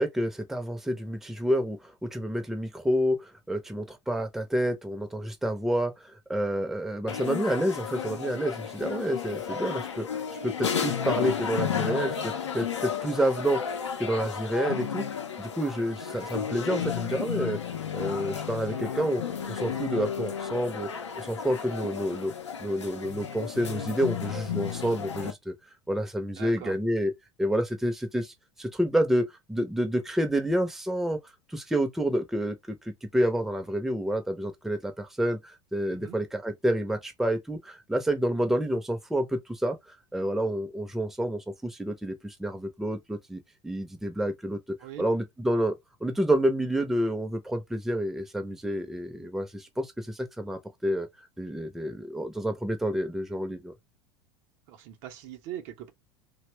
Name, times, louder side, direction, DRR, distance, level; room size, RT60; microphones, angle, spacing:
voice 1, 0.0-15.1 15.4-17.6 17.9-19.2 19.5-22.3 22.6-25.5 25.9-27.1 27.4-31.2 31.5-39.8 40.1-51.1 51.4-53.7, equal, ahead, 0.6 m, -29 dB
sound 1, 7.1-25.3, left 7 dB, 75° left, 0.6 m, -33 dB
voice 2, 26.4-26.8 35.9-36.2 44.8-45.0 54.7-55.9, right 11 dB, 50° right, 0.7 m, -41 dB
2.8 x 2.2 x 3.2 m
figure-of-eight pair, 80°, 15 cm